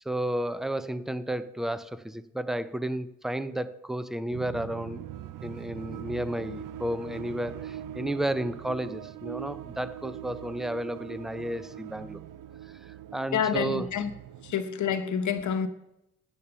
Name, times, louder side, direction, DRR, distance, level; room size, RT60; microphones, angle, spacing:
voice 1, 0.1-5.0 5.4-12.2 12.9-13.9, right 1 dB, ahead, 0.5 m, -32 dB
sound 1, 4.3-14.5, right 12 dB, 90° right, 0.5 m, -42 dB
voice 2, 13.3-14.1 14.4-15.7, left 8 dB, 70° left, 0.9 m, -28 dB
8.9 x 8.5 x 6.8 m
cardioid pair, 110°, 31 cm